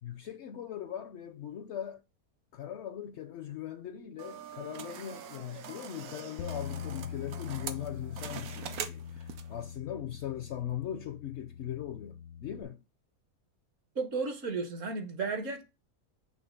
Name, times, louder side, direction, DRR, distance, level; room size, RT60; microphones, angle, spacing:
voice 1, 0.0-2.0 2.5-12.8, left 10 dB, 65° left, 0.7 m, -40 dB
sound 1, 4.2-9.6, right 8 dB, 80° right, 1.2 m, -43 dB
Bass guitar, 6.4-12.6, left 8 dB, 90° left, 1.1 m, -43 dB
voice 2, 13.9-15.6, right 4 dB, 60° right, 1.3 m, -33 dB
6.4 x 3.0 x 5.0 m
omnidirectional pair, 1.5 m